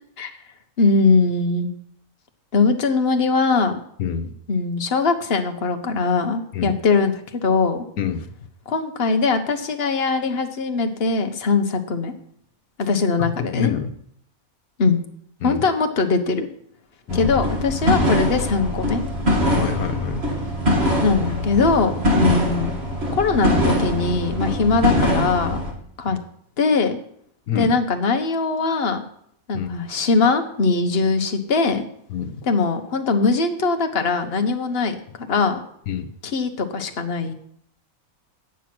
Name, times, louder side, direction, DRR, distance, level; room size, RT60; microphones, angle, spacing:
voice 1, 0.8-1.7 2.5-3.8 4.5-7.8 8.7-12.1 12.8-13.7 14.8-15.0 15.4-16.5 17.1-19.0 21.0-22.7 23.1-25.6 26.0-26.2 26.6-27.0 27.5-29.0 29.5-31.8 32.4-35.6 36.2-37.3, left 4 dB, 45° left, 6 dB, 1.3 m, -21 dB
voice 2, 4.0-4.3 6.5-6.7 8.0-8.3 13.5-13.9 15.4-15.6 17.1-17.3 19.6-20.2 22.2-22.4 26.1-26.2 27.5-27.8 29.5-29.7 32.1-32.4 35.9-36.1, left 8 dB, 75° left, 8 dB, 1.4 m, -26 dB
sound 1, 17.1-25.7, equal, 45° right, 2.4 m, -22 dB
9.7 x 9.1 x 6.1 m, 0.68 s
omnidirectional pair, 1.6 m